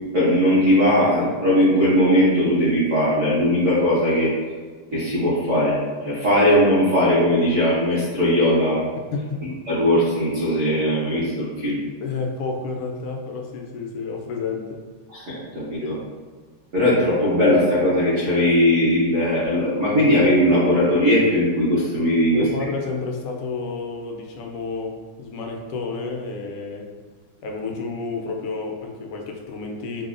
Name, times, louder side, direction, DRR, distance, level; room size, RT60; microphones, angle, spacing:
voice 1, 0.1-4.3 4.9-5.8 6.0-8.9 9.7-11.8 15.1-15.9 16.7-22.5, equal, 70° right, -9 dB, 0.7 m, -19 dB
voice 2, 9.1-9.4 12.0-14.8 15.8-16.0 22.3-26.9 27.4-30.1, left 4 dB, 90° left, 2 dB, 1.5 m, -30 dB
5.3 x 2.1 x 2.4 m, 1.5 s
omnidirectional pair, 2.4 m